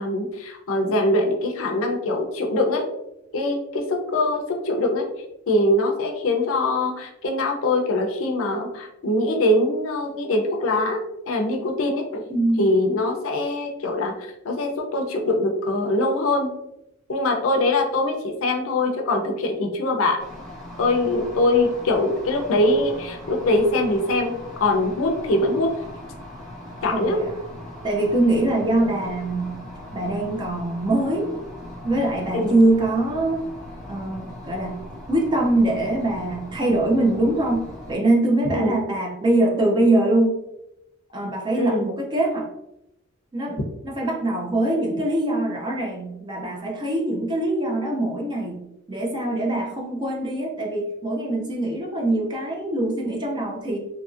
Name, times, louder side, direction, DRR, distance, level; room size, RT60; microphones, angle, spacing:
voice 1, 0.0-2.9 3.3-5.1 5.5-12.2 12.6-14.1 14.4-16.5 17.1-20.2 20.8-24.3 24.6-25.7 26.8-27.2 32.3-32.5 38.5-38.8 41.6-41.9, left 2 dB, 70° left, 2 dB, 0.5 m, -22 dB
voice 2, 12.3-12.8 26.9-27.4 27.8-29.6 29.9-31.3 31.8-33.5 33.9-34.8 35.1-40.4 41.1-42.5 43.3-43.6 43.8-53.8, right 1 dB, 20° right, -1 dB, 0.4 m, -23 dB
sound 1, 20.2-38.0, left 1 dB, ahead, 0.8 m, -39 dB
2.8 x 2.6 x 2.4 m, 0.86 s
head